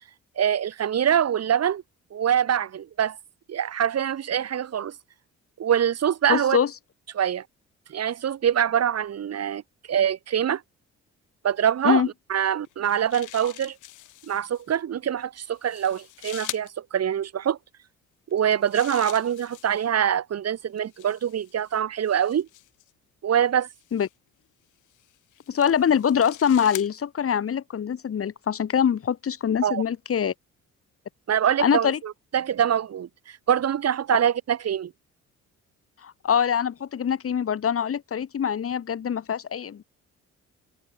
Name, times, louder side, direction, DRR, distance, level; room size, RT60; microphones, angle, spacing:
voice 1, 0.4-1.8 2.1-3.2 3.5-4.9 5.6-6.6 7.1-7.4 7.9-9.6 9.9-10.6 11.4-12.0 12.3-13.8 14.3-17.6 18.3-22.5 23.2-23.7 29.6-29.8 31.3-34.9, right 9 dB, 55° right, 2.0 m, -24 dB
voice 2, 6.3-6.7 11.8-12.1 23.9-24.1 25.5-30.3 31.6-32.0 36.0-39.8, left 8 dB, 50° left, 2.1 m, -24 dB
sound 1, 12.6-14.6 15.5-16.7 18.3-19.9 20.8-22.9 23.8-24.1 24.9-26.9, left 15 dB, 90° left, 3.8 m, -43 dB
cardioid pair, 90°, 30 cm